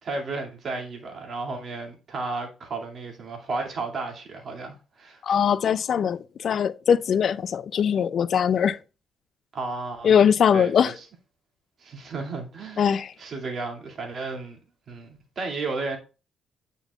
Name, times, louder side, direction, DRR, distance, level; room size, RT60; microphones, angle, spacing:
voice 1, 0.0-5.2 9.5-10.1 10.5-11.1 11.8-12.9 13.2-14.6 14.9-16.0, right 3 dB, 50° right, 2.3 m, -33 dB
voice 2, 5.2-8.8 10.0-10.9 12.8-13.1, left 8 dB, 60° left, 0.4 m, -21 dB
9.0 x 5.4 x 2.4 m
cardioid pair, 90°, 0 cm